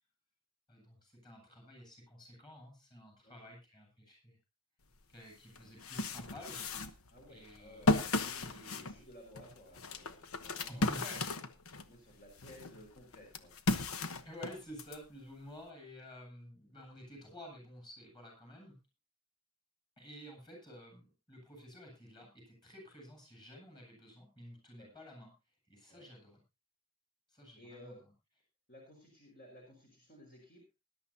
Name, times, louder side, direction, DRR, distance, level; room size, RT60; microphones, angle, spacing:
voice 1, 0.7-4.4 5.1-6.7 7.3-7.9 8.4-9.0 10.7-11.3 14.2-18.8 20.0-25.3 25.7-26.4 27.3-28.1, equal, 20° left, 1 dB, 7.4 m, -51 dB
sound 1, 5.0-5.1 5.6-11.9 12.4-15.0, left 2 dB, 75° left, 1.1 m, -35 dB
voice 2, 7.1-11.0 11.8-13.5 24.8-24.9 25.9-26.1 27.6-28.0 28.7-30.8, left 1 dB, 45° left, 0 dB, 5.0 m, -57 dB
20.0 x 11.5 x 2.8 m, 0.26 s
head